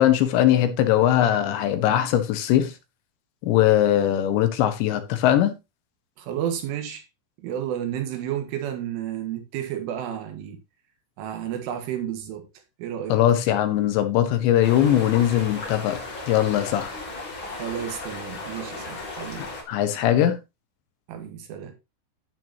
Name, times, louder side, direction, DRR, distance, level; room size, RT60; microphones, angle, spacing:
voice 1, 0.0-2.7 3.4-5.5 13.1-16.0 16.3-16.9 19.7-20.4, left 11 dB, 75° left, 3.2 m, -20 dB
voice 2, 6.2-7.0 7.4-10.6 11.2-12.5 12.8-13.2 17.5-19.4 21.1-21.8, right 10 dB, 90° right, 4.2 m, -31 dB
sound 1, 14.6-19.6, left 2 dB, 35° left, 2.5 m, -36 dB
10.5 x 9.1 x 2.9 m
omnidirectional pair, 5.5 m